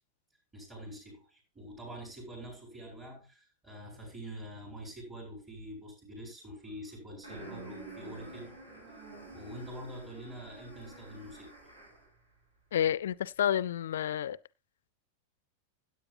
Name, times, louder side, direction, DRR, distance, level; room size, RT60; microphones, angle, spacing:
voice 1, 0.5-8.5 9.3-11.5, equal, 20° right, 6.7 m, -45 dB
sound 1, 7.2-12.1, right 2 dB, 85° right, 7.3 m, -49 dB
voice 2, 12.7-14.4, left 10 dB, 60° left, 0.5 m, -29 dB
16.5 x 8.6 x 2.6 m
figure-of-eight pair, 90°, 0 cm